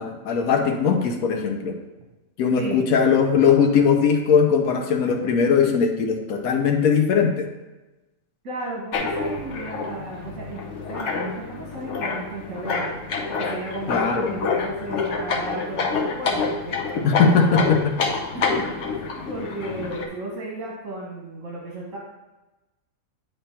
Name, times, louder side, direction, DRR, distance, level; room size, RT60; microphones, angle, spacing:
voice 1, 0.0-1.8 2.4-7.5 13.9-14.4 17.0-17.9, left 6 dB, 85° left, 3 dB, 1.1 m, -20 dB
voice 2, 8.4-10.6 10.9-12.9 13.4-16.8 17.4-17.7 18.3-22.0, right 2 dB, 65° right, -3 dB, 1.5 m, -34 dB
sound 1, 8.9-20.0, left 4 dB, 60° left, 1.0 m, -27 dB
8.8 x 3.3 x 4.3 m, 1.1 s
omnidirectional pair, 1.5 m